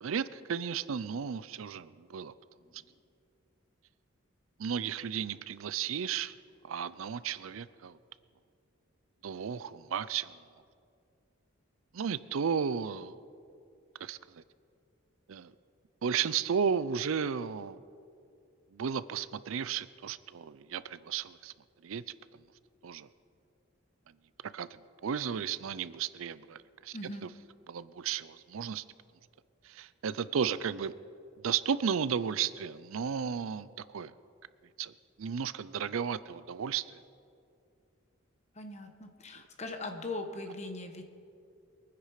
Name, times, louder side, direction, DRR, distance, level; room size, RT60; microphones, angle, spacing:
voice 1, 0.0-2.3 4.6-6.3 6.6-8.0 9.2-10.4 11.9-13.2 14.0-14.4 15.3-15.5 16.0-17.8 18.7-21.5 21.8-22.0 22.8-23.1 24.5-27.0 27.7-28.8 29.6-30.9 31.4-34.1 34.8-37.0, right 7 dB, 85° right, 16 dB, 0.5 m, -34 dB
voice 2, 26.9-27.2 38.5-41.0, left 2 dB, 35° left, 5 dB, 1.2 m, -40 dB
22.5 x 9.8 x 4.9 m, 2.5 s
head